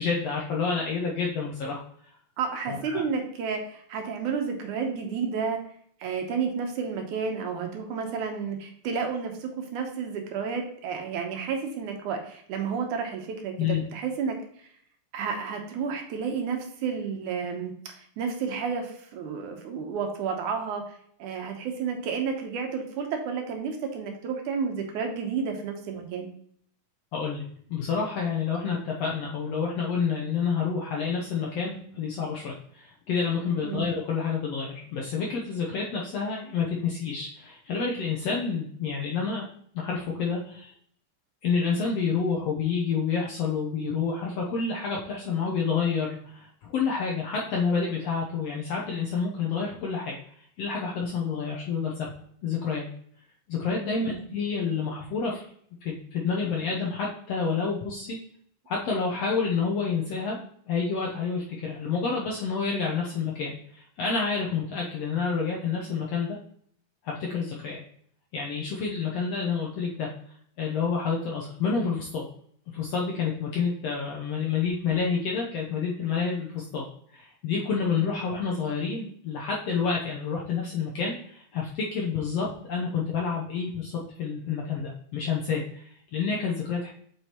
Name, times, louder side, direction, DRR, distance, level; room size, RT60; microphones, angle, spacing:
voice 1, 0.0-1.8 2.7-3.0 13.6-13.8 27.1-39.5 39.7-40.7 41.4-50.2 50.6-52.1 52.4-52.9 53.5-55.5 55.8-58.2 58.7-60.4 60.7-66.4 67.0-67.8 68.3-70.1 70.6-72.2 72.7-76.8 77.1-86.9, left 5 dB, 70° left, -2 dB, 1.5 m, -29 dB
voice 2, 2.4-5.6 6.0-14.7 15.1-17.7 18.2-20.9 21.2-26.3 33.6-33.9 54.0-54.3, right 6 dB, 75° right, 4 dB, 2.3 m, -31 dB
7.9 x 5.1 x 2.9 m, 0.63 s
omnidirectional pair, 3.8 m